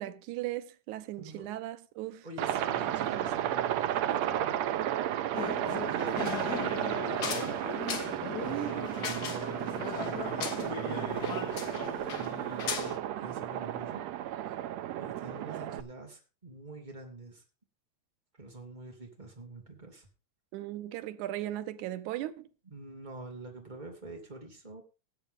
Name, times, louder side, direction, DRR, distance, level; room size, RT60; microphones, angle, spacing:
voice 1, 0.0-2.3 3.0-3.3 8.4-8.9 20.5-22.5, right 14 dB, 90° right, 2.1 m, -38 dB
voice 2, 1.2-1.6 2.2-4.6 5.7-8.0 8.4-11.9 12.2-14.0 15.0-17.4 18.4-20.1 22.6-24.8, right 2 dB, 15° right, 3.0 m, -46 dB
Aircraft, 2.4-15.8, right 12 dB, 70° right, 1.9 m, -33 dB
sound 1, 5.3-13.0, left 6 dB, 50° left, 1.3 m, -37 dB
18.5 x 8.0 x 3.7 m
omnidirectional pair, 3.3 m